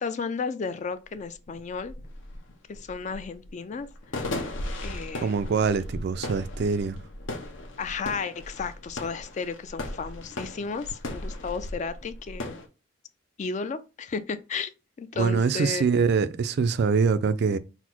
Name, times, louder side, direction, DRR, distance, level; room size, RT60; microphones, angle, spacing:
voice 1, 0.0-1.9 2.7-3.9 4.2-4.5 4.8-5.3 7.8-12.6 13.4-14.7 15.0-15.8, left 5 dB, 35° left, 0.3 m, -33 dB
sound 1, 0.7-0.8 1.2-12.7, left 1 dB, 70° left, 0.8 m, -37 dB
voice 2, 5.2-7.0 15.2-17.6, right 5 dB, 55° right, 0.3 m, -24 dB
4.1 x 2.0 x 4.4 m
head